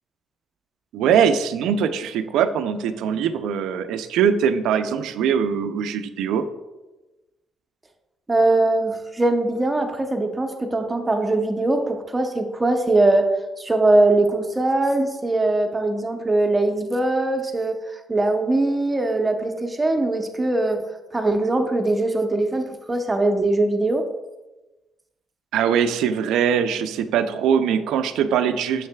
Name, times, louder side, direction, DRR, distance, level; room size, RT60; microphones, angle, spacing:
voice 1, 0.9-6.5 25.5-28.9, right 8 dB, 90° right, 10 dB, 0.4 m, -22 dB
voice 2, 8.3-13.3 13.6-20.8 21.1-24.1, right 2 dB, 20° right, 4 dB, 0.7 m, -21 dB
6.4 x 6.4 x 2.2 m, 1.1 s
cardioid pair, 90°, 0 cm